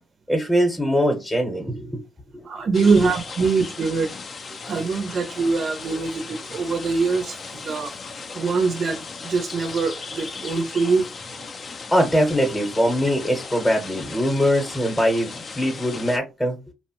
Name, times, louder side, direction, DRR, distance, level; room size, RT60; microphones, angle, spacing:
voice 1, 0.3-2.0 2.3-2.4 11.9-16.6, equal, 5° left, 0.8 m, -22 dB
voice 2, 2.4-4.1 4.7-7.9 8.3-11.5, right 4 dB, 55° right, 0.5 m, -23 dB
sound 1, 2.7-16.2, left 4 dB, 45° left, 0.4 m, -37 dB
2.8 x 2.0 x 2.8 m
cardioid pair, 90°, 0 cm